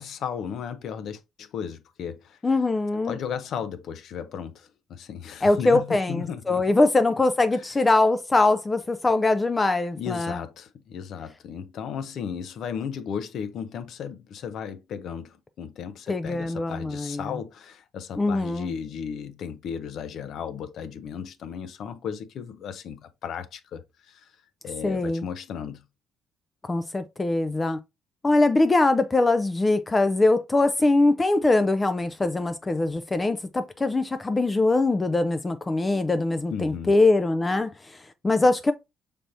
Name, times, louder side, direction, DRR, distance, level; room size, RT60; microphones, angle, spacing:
voice 1, 0.0-2.4 3.0-6.6 7.5-7.7 9.9-24.4 24.6-25.8 36.5-36.9, left 7 dB, 65° left, 0.6 m, -35 dB
voice 2, 2.4-3.2 5.4-10.4 16.1-17.2 18.2-18.7 24.8-25.2 26.7-27.8 28.2-38.7, left 2 dB, 20° left, 0.4 m, -22 dB
5.7 x 3.4 x 2.6 m
cardioid pair, 105°, 0 cm